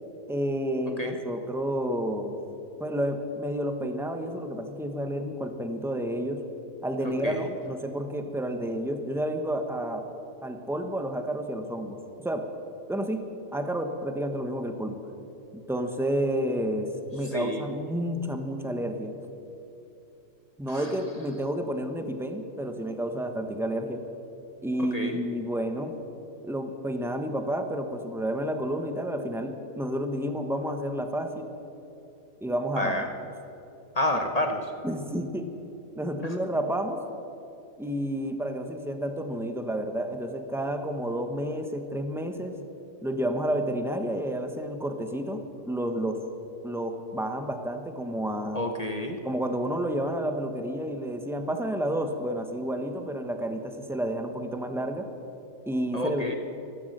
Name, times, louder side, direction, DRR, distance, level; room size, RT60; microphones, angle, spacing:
voice 1, 0.3-2.4 2.8-6.4 6.8-10.0 10.4-12.4 12.9-13.2 13.5-15.0 15.7-19.1 20.6-24.0 24.6-25.9 26.4-31.5 32.4-33.1 34.8-35.5 35.9-37.0 37.8-42.6 43.0-45.4 45.7-46.2 46.6-48.6 49.2-55.1 55.7-56.3, right 1 dB, ahead, 6 dB, 0.6 m, -30 dB
voice 2, 7.0-7.5 17.3-17.7 20.7-20.9 24.8-25.2 32.8-33.1 34.0-34.7 48.5-49.2 55.9-56.3, left 1 dB, 35° left, 5 dB, 0.7 m, -29 dB
15.5 x 11.5 x 6.5 m, 2.9 s
omnidirectional pair, 1.8 m